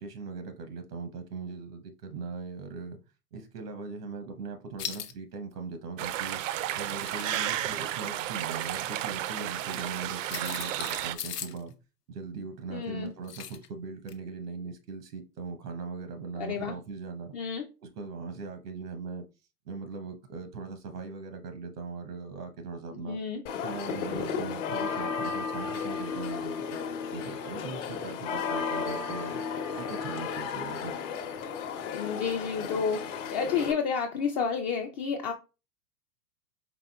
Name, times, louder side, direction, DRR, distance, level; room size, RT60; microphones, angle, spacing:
voice 1, 0.0-3.0 3.3-6.4 6.7-11.8 12.1-17.4 17.8-19.2 19.7-23.2 23.6-29.4 29.8-31.0, right 4 dB, 80° right, 1.0 m, -40 dB
sound 1, 4.8-5.1 6.8-7.6 9.6-9.7 10.3-11.6 13.3-13.7 14.1-14.2, left 9 dB, 85° left, 0.8 m, -39 dB
sound 2, 6.0-11.2, right 12 dB, 55° right, 0.5 m, -32 dB
voice 2, 12.7-13.1 16.4-16.7 17.3-17.7 22.9-23.4 31.9-35.3, left 6 dB, 30° left, 0.4 m, -31 dB
sound 3, 23.5-33.7, left 6 dB, 50° left, 0.9 m, -34 dB
5.0 x 3.3 x 2.3 m
hypercardioid pair, 105°, 46 cm